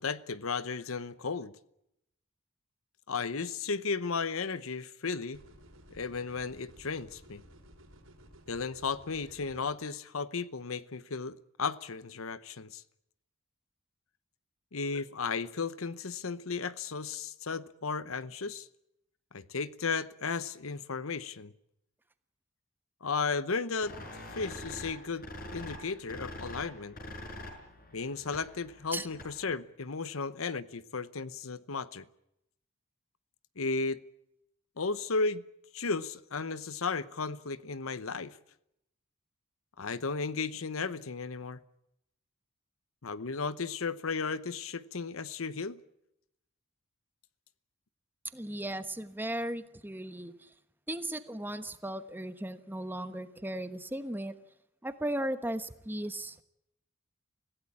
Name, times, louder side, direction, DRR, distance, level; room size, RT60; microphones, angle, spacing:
voice 1, 0.0-1.5 3.1-5.4 5.9-7.4 8.5-12.8 14.7-18.7 19.3-21.5 23.0-23.9 24.3-27.0 27.9-32.0 33.6-34.0 34.8-35.4 35.7-38.4 39.8-41.6 43.0-45.8, left 4 dB, 80° left, 0.9 m, -34 dB
sound 1, 5.3-9.7, equal, 80° right, 5.0 m, -55 dB
sound 2, 23.8-29.5, left 1 dB, 45° left, 5.8 m, -45 dB
voice 2, 48.3-50.5 50.9-54.3 54.8-56.4, right 1 dB, 10° right, 1.2 m, -36 dB
25.5 x 16.5 x 8.7 m
head